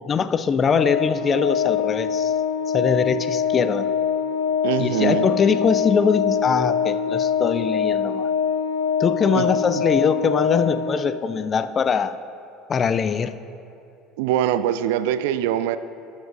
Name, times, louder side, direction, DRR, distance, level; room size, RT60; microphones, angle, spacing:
voice 1, 0.0-2.3 2.7-3.9 4.8-8.3 9.0-12.2 12.7-13.4, left 6 dB, 35° left, 13 dB, 0.4 m, -22 dB
Organ, 0.6-11.4, left 7 dB, 80° left, 0.7 m, -24 dB
voice 2, 4.6-5.3 9.3-9.5 14.2-15.8, right 11 dB, 65° right, 13 dB, 0.3 m, -23 dB
18.0 x 7.2 x 2.5 m, 2.6 s
figure-of-eight pair, 65°, 0 cm